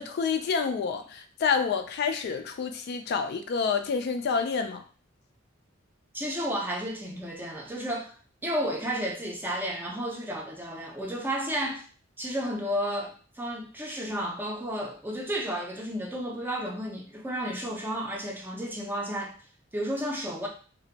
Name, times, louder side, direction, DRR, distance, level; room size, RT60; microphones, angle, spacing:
voice 1, 0.0-4.8, left 5 dB, 55° left, 0.3 m, -28 dB
voice 2, 6.1-8.2 8.4-11.8 12.2-19.4 19.7-20.5, equal, 10° right, 0.5 m, -32 dB
2.5 x 2.1 x 3.9 m
head